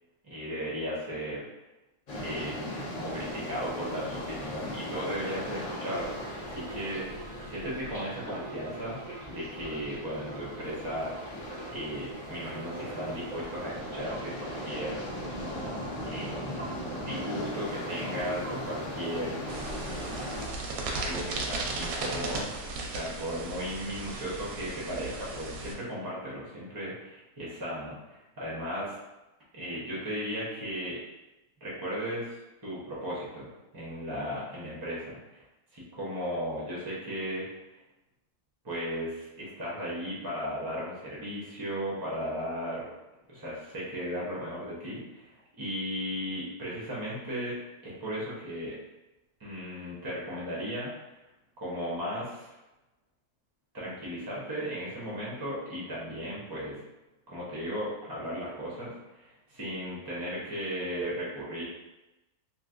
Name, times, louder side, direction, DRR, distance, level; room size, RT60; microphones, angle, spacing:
voice 1, 0.3-1.5 2.2-9.0 9.3-11.1 11.7-15.0 16.0-16.7 17.0-19.4 20.4-20.7 20.9-22.5 22.9-29.0 29.5-31.0 31.6-32.4 32.6-35.4 35.7-37.4 38.6-42.8 43.3-47.6 47.8-48.7 49.4-50.9 51.6-52.5 53.7-56.8 57.3-61.6, equal, 35° right, -7 dB, 0.3 m, -36 dB
sound 1, 2.1-20.5, left 1 dB, 75° left, 0.3 m, -39 dB
sound 2, 5.6-21.5 21.8-22.7 23.0-23.3, right 2 dB, 5° left, 0.7 m, -44 dB
sound 3, 19.5-25.7, right 2 dB, 85° right, 1.1 m, -36 dB
3.1 x 2.6 x 2.4 m, 1.0 s
omnidirectional pair, 1.6 m